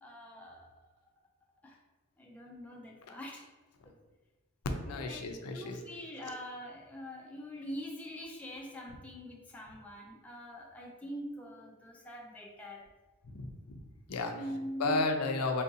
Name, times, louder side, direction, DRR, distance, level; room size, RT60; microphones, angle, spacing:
voice 1, 0.0-0.7 1.6-1.8 2.2-3.4 4.9-5.2 5.5-12.9 14.1-15.0, equal, 5° left, -2 dB, 0.3 m, -44 dB
voice 2, 4.6-5.8 13.2-13.8 14.1-14.4 14.8-15.6, left 3 dB, 90° left, 5 dB, 0.4 m, -33 dB
3.6 x 2.5 x 2.7 m, 1.2 s
head